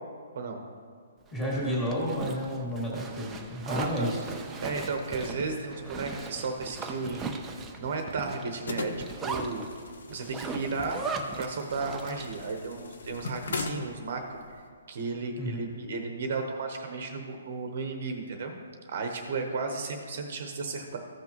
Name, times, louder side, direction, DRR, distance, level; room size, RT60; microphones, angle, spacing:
voice 1, 1.3-4.2 15.4-15.6, equal, 10° left, -6 dB, 2.2 m, -31 dB
Zipper (clothing), 1.3-12.5, right 3 dB, 10° right, 0.5 m, -39 dB
voice 2, 3.7-4.1 4.6-9.6 10.1-11.0 11.4-14.4 14.9-18.5 18.9-21.0, right 4 dB, 45° right, 4 dB, 0.9 m, -34 dB
sound 1, 8.7-14.7, left 4 dB, 75° left, 0.9 m, -40 dB
14.5 x 6.0 x 3.0 m, 2.1 s
hypercardioid pair, 170°, 0 cm